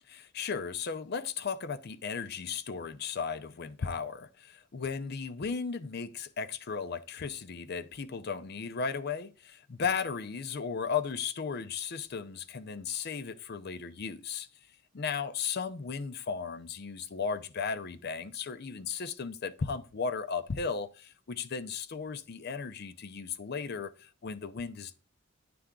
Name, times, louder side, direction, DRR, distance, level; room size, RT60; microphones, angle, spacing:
voice 1, 0.1-14.5 14.9-24.9, left 5 dB, 55° left, 0.5 m, -35 dB
9.8 x 3.4 x 3.7 m
head